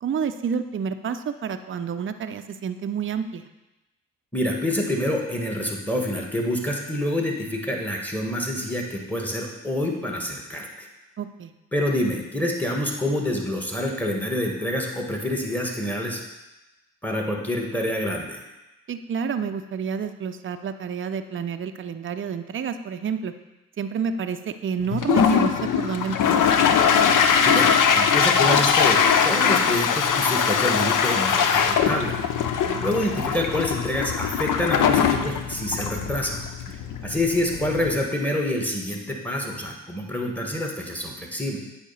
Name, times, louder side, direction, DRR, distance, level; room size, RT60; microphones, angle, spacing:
voice 1, 0.0-3.4 11.2-11.5 18.9-23.3 23.8-26.2 32.6-32.8, right 6 dB, 35° right, 9 dB, 0.5 m, -29 dB
voice 2, 4.3-10.9 11.7-16.2 17.0-18.4 27.2-29.0 29.2-32.2 32.5-32.6 32.8-36.4 36.7-41.6, left 1 dB, 5° left, 0 dB, 1.6 m, -27 dB
Toilet flush, 24.9-38.0, left 7 dB, 55° left, 0.7 m, -21 dB
8.2 x 2.9 x 5.6 m, 1.0 s
hypercardioid pair, 45°, 37 cm